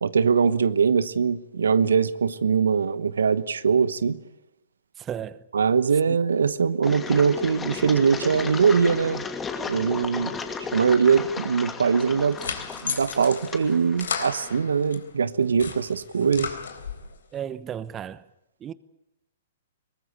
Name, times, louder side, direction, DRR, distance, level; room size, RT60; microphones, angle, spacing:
voice 1, 0.0-4.2 5.5-9.2 9.7-10.3 10.7-12.4 12.8-16.5, right 6 dB, 75° right, 1.0 m, -22 dB
voice 2, 5.0-5.4 6.1-6.2 17.3-18.2 18.6-18.7, right 9 dB, 25° right, 1.0 m, -34 dB
Engine, 6.8-14.6, left 5 dB, 15° left, 2.4 m, -35 dB
sound 1, 12.0-15.0 15.4-17.1, left 6 dB, 75° left, 4.0 m, -34 dB
22.5 x 20.0 x 8.6 m
hypercardioid pair, 120°, 0 cm